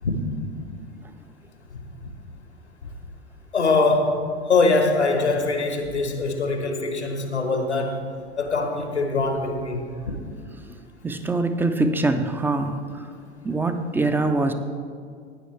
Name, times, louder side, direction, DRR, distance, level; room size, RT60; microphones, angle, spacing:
voice 1, 3.5-4.2 4.5-8.1 8.4-10.1, left 3 dB, 85° left, 5 dB, 1.3 m, -23 dB
voice 2, 11.0-13.1 13.4-14.5, right 2 dB, 5° right, 8 dB, 0.4 m, -24 dB
15.0 x 9.4 x 3.3 m, 2.2 s
figure-of-eight pair, 85°, 33 cm